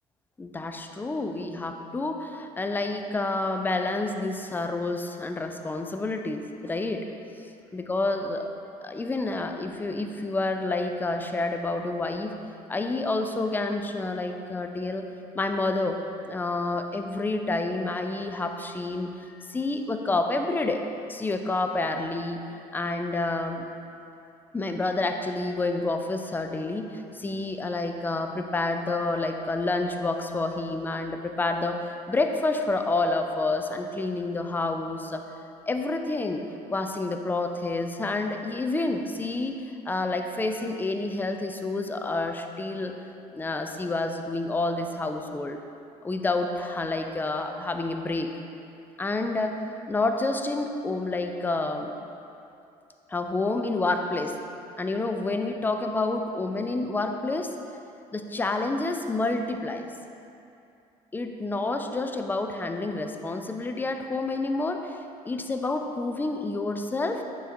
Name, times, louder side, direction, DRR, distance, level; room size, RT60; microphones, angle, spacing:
voice 1, 0.4-7.1 7.7-8.5 8.8-12.4 12.7-15.1 15.3-16.0 16.3-22.4 22.7-23.7 24.5-35.2 35.7-36.4 36.7-43.0 43.3-45.6 46.0-48.3 49.0-49.6 49.9-51.9 53.1-54.4 54.8-57.5 58.1-59.9 61.1-65.0 65.2-67.2, left 2 dB, 10° left, 5 dB, 0.4 m, -29 dB
8.9 x 4.6 x 2.7 m, 2.7 s
figure-of-eight pair, 55°, 20 cm